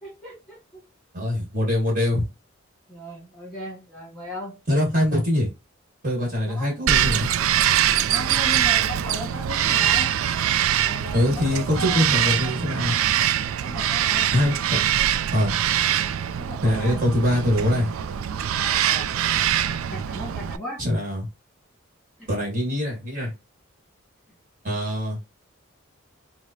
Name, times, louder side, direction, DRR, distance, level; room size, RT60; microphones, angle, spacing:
voice 1, 0.0-0.8 2.1-2.2 2.9-4.6 6.5-6.7 7.2-7.3 8.1-10.1 10.8-12.5 13.6-14.3 16.4-17.6 18.5-19.1 19.9-20.8 22.2-22.3, left 1 dB, 5° left, -4 dB, 2.2 m, -37 dB
voice 2, 1.1-2.3 4.7-5.5 6.0-7.3 11.1-12.9 14.3-14.5 15.3-15.5 16.6-17.9 20.8-21.2 22.3-23.3 24.6-25.2, left 1 dB, 40° right, -2 dB, 1.4 m, -23 dB
Bird vocalization bird call bird song, 6.9-20.6, right 10 dB, 90° right, 0.3 m, -23 dB
4.8 x 2.1 x 2.7 m, 0.26 s
head